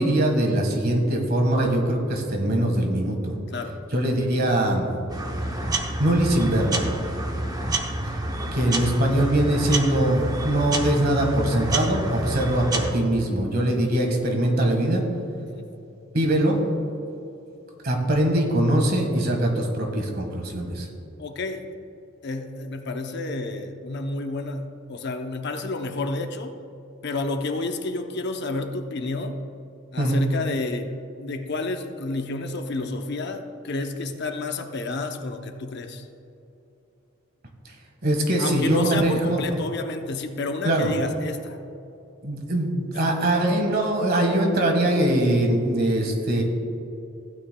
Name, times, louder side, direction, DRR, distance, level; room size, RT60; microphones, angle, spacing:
voice 1, 0.0-3.4 3.9-4.9 6.0-6.9 8.5-15.0 16.1-16.6 17.8-20.9 30.0-30.2 38.0-39.4 40.6-40.9 42.2-46.4, right 1 dB, 50° right, 2 dB, 1.6 m, -22 dB
sound 1, 5.1-12.9, right 2 dB, 20° right, 0.7 m, -28 dB
voice 2, 21.2-21.7 22.2-26.5 27.0-29.4 29.9-30.9 31.2-36.1 38.4-41.6, left 3 dB, 55° left, 6 dB, 0.7 m, -30 dB
15.5 x 9.3 x 2.3 m, 2.8 s
head